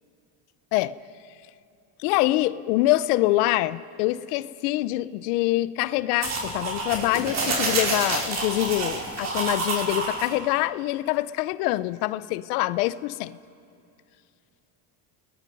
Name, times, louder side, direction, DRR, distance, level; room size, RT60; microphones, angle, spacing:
voice 1, 2.0-13.4, left 17 dB, 85° left, 17 dB, 0.7 m, -25 dB
sound 1, 6.2-10.3, right 3 dB, 35° right, 5.0 m, -28 dB
29.5 x 20.5 x 5.3 m, 2.6 s
supercardioid pair, 115°, 44 cm